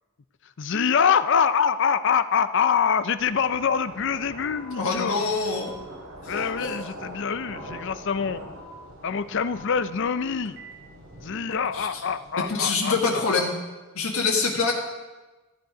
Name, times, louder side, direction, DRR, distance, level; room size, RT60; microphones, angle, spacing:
voice 1, 0.6-5.3 6.3-8.4 9.0-10.6 11.2-13.2, left 6 dB, 60° left, 13 dB, 0.5 m, -25 dB
sound 1, 2.6-2.7 3.6-3.7 4.6-4.7 5.6-5.7 6.6-6.7 7.6-7.7 8.6-8.7 9.6-9.7 10.6-10.7, left 2 dB, 65° right, 2.9 m, -46 dB
sound 2, 3.2-12.6, right 1 dB, 85° right, 2.9 m, -43 dB
voice 2, 4.8-5.7 6.2-6.8 11.7-12.0 12.5-13.6 13.9-14.7, left 4 dB, 80° left, -1 dB, 1.6 m, -25 dB
14.0 x 9.4 x 5.1 m, 1.2 s
head